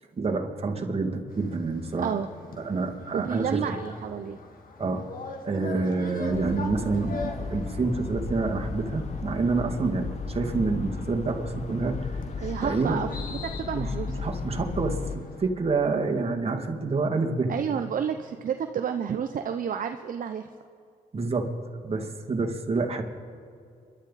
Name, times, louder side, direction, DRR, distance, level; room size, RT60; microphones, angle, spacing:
voice 1, 0.2-2.1 2.6-3.7 4.8-5.0 5.4-13.0 13.7-17.5 21.1-23.0, right 3 dB, 35° right, 2 dB, 2.3 m, -28 dB
sound 1, 1.3-15.5, left 3 dB, 60° left, 2.1 m, -44 dB
voice 2, 3.1-4.4 12.4-13.1 13.4-14.2 17.5-20.5, right 8 dB, 55° right, 6 dB, 0.7 m, -30 dB
sound 2, 6.3-15.2, left 4 dB, 45° left, 1.0 m, -35 dB
27.5 x 12.0 x 4.2 m, 2.4 s
cardioid pair, 65°, 16 cm